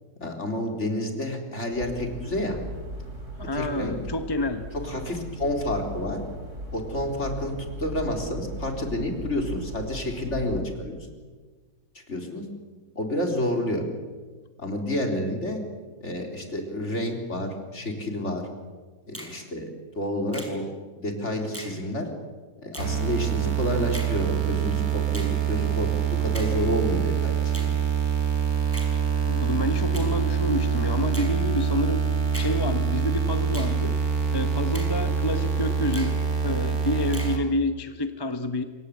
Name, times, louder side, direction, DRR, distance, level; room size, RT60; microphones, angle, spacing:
voice 1, 0.2-2.6 3.5-4.0 4.7-6.2 6.7-11.0 11.9-12.4 12.9-13.8 14.6-15.6 16.0-18.5 19.1-20.7 21.0-22.1 22.6-27.7, left 1 dB, 45° left, 3 dB, 4.3 m, -29 dB
sound 1, 1.7-10.6, equal, 45° right, 3.8 m, -38 dB
voice 2, 3.4-4.7 28.9-32.0 32.3-34.0 34.3-38.6, left 1 dB, 20° left, 9 dB, 0.8 m, -29 dB
Finger snapping, 19.1-19.4 20.3-20.6 21.5-21.8 22.7-22.9 23.9-24.2 25.1-25.4 26.3-26.6 27.5-27.7 28.7-28.9 29.9-30.1 31.1-31.4 32.3-32.6 33.5-33.8 34.7-35.0 35.9-36.2 37.1-37.4, equal, 10° right, 5.2 m, -39 dB
sound 2, 22.8-37.4, right 7 dB, 60° right, 3.5 m, -25 dB
27.0 x 24.0 x 8.4 m, 1.4 s
omnidirectional pair, 1.7 m